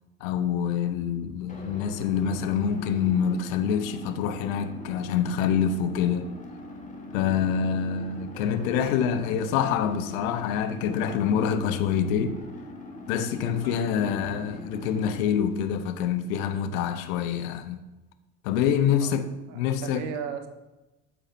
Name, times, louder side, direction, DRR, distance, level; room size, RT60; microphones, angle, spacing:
voice 1, 0.2-6.3 7.1-12.4 13.1-17.8 18.4-19.2 19.5-20.0, left 8 dB, 60° left, 0.9 m, -26 dB
sound 1, 1.5-15.2, left 1 dB, 15° left, 1.6 m, -42 dB
sound 2, 13.6-16.0, left 3 dB, 85° left, 1.5 m, -50 dB
voice 2, 19.5-20.5, right 8 dB, 60° right, 1.1 m, -35 dB
12.5 x 4.9 x 2.8 m
figure-of-eight pair, 60°, 46 cm